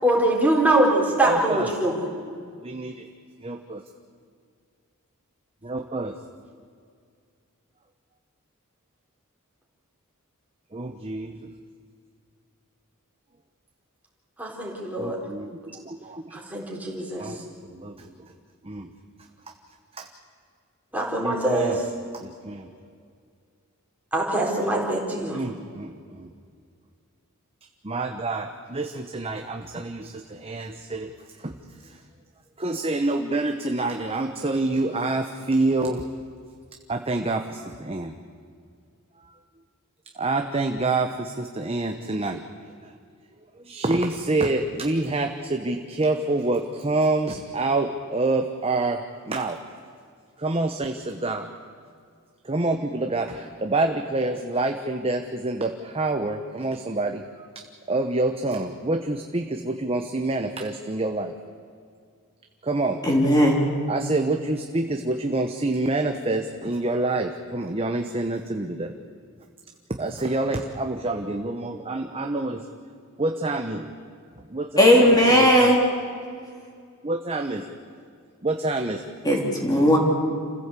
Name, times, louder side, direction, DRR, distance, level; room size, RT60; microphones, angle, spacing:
voice 1, 0.0-2.0 14.4-15.2 16.3-17.3 20.9-21.8 24.1-25.4, right 1 dB, 5° right, -3 dB, 4.1 m, -23 dB
voice 2, 1.2-1.7 2.6-3.1 3.4-3.8 5.6-6.2 10.7-11.5 15.0-16.4 17.2-18.3 18.6-18.9 20.0-20.1 21.2-21.8 22.1-22.7 25.3-26.3 27.8-32.0 32.6-36.1 36.9-38.1 39.2-39.4 40.1-42.4 42.8-42.9 43.6-49.0 49.3-49.6 50.4-51.5 52.4-61.3 62.6-63.3 63.9-68.9 69.9-72.7 73.2-73.9 74.5-75.8 77.0-77.8 78.4-79.0, right 2 dB, 25° right, 5 dB, 1.0 m, -27 dB
voice 3, 63.1-63.6 74.8-75.8 79.2-80.0, equal, 15° left, -2 dB, 3.4 m, -17 dB
28.0 x 15.5 x 8.4 m, 2.2 s
head